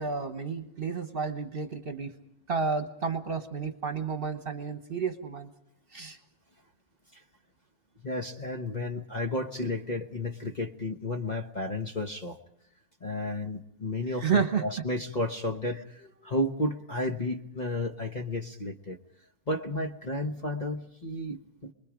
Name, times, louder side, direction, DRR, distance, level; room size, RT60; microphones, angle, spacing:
voice 1, 0.0-2.2 2.5-5.5 5.9-6.2 14.2-14.6, right 5 dB, 40° right, 7 dB, 1.4 m, -31 dB
voice 2, 8.0-12.4 13.0-19.0 19.5-21.7, left 1 dB, 30° left, 3 dB, 1.2 m, -32 dB
28.5 x 21.5 x 5.1 m, 0.76 s
omnidirectional pair, 1.6 m